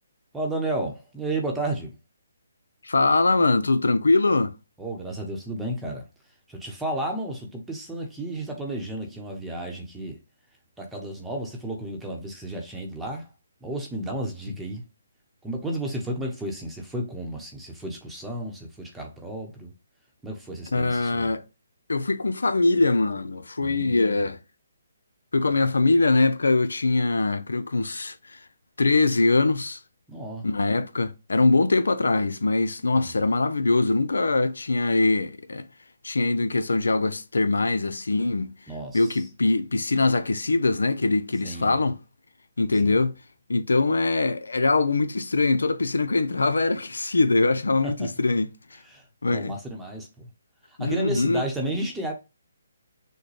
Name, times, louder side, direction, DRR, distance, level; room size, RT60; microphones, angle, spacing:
voice 1, 0.3-1.9 4.8-6.1 6.5-10.2 10.8-13.3 13.6-14.8 15.4-19.7 20.2-21.3 23.6-24.2 30.1-30.5 33.0-33.1 38.7-39.2 41.4-41.8 42.8-43.0 47.8-48.1 48.9-50.3 50.7-52.1, right 1 dB, 5° right, 0.9 m, -32 dB
voice 2, 2.8-4.5 14.5-14.6 20.7-21.4 21.9-24.4 25.3-28.4 28.8-29.8 30.4-35.7 36.0-38.5 38.9-42.0 42.6-43.2 43.5-48.8 49.2-49.5 50.8-51.4, left 3 dB, 90° left, 0.6 m, -22 dB
6.3 x 2.2 x 3.3 m
hypercardioid pair, 155°, 0 cm